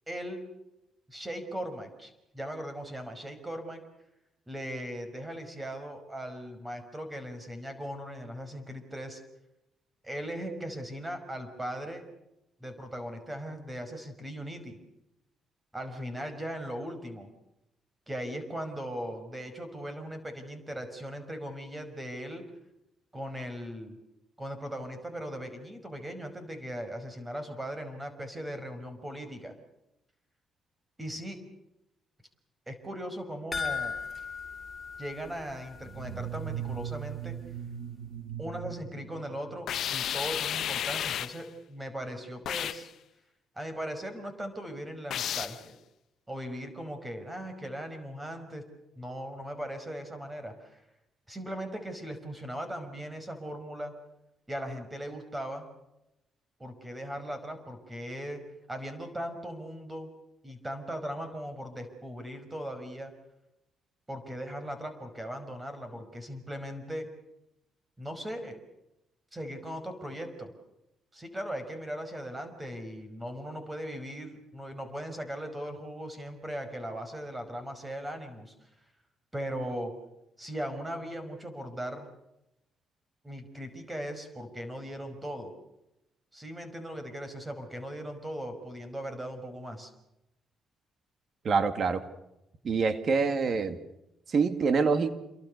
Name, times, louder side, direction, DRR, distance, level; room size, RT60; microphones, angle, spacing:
voice 1, 0.1-0.4 1.1-3.8 4.5-9.2 10.0-12.1 12.6-14.8 15.7-17.3 18.1-22.4 23.1-24.0 24.4-29.6 31.0-31.4 32.7-34.0 35.0-37.3 38.4-42.9 43.6-45.8 46.3-48.6 49.0-50.8 51.3-53.9 54.5-55.7 56.6-58.4 58.7-60.1 60.4-63.1 64.1-67.1 68.0-68.6 69.3-70.5 71.1-78.7 79.3-79.9 80.4-82.1 83.2-85.5 86.3-89.9, equal, 15° right, 8 dB, 5.5 m, -38 dB
sound 1, 33.5-36.1 36.3-36.4 36.9-37.0, left 5 dB, 20° left, 7.4 m, -37 dB
sound 2, 35.8-39.9, right 10 dB, 75° right, 1.3 m, -39 dB
sound 3, 39.7-41.4 42.5-42.9 45.1-45.6, left 10 dB, 70° left, 0.9 m, -32 dB
voice 2, 91.4-92.0 92.6-93.8 94.3-95.1, right 5 dB, 50° right, 10 dB, 2.3 m, -25 dB
28.0 x 23.5 x 6.8 m, 0.89 s
cardioid pair, 90°, 0 cm